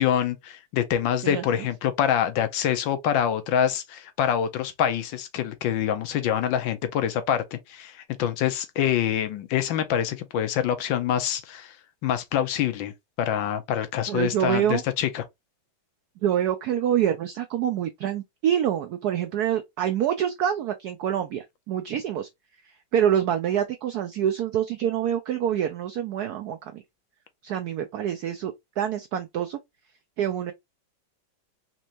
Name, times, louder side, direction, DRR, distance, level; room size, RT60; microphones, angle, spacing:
voice 1, 0.0-11.8 12.0-12.9 13.2-15.2, left 9 dB, 75° left, 1.4 m, -25 dB
voice 2, 1.2-1.7 14.1-14.8 16.2-22.3 22.9-26.8 27.4-29.6 30.2-30.5, right 10 dB, 80° right, 0.8 m, -26 dB
4.3 x 3.0 x 2.4 m
omnidirectional pair, 2.2 m